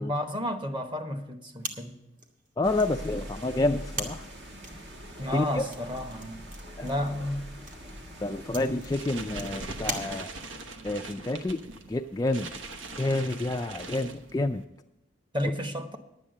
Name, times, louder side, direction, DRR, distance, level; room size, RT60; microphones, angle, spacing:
voice 1, 0.0-2.0 5.2-6.4 6.8-7.5 15.3-16.0, left 1 dB, 25° right, 1.1 m, -31 dB
sound 1, 1.6-10.6, right 2 dB, 40° right, 1.4 m, -42 dB
voice 2, 2.6-4.3 5.3-5.6 6.8-6.9 8.2-10.3 10.8-11.6 11.9-12.5 13.0-14.6, left 2 dB, 20° left, 0.3 m, -29 dB
sound 2, 2.6-10.0, equal, 60° right, 1.7 m, -43 dB
sound 3, 8.7-14.6, right 3 dB, 75° right, 1.1 m, -42 dB
11.0 x 8.6 x 6.6 m
head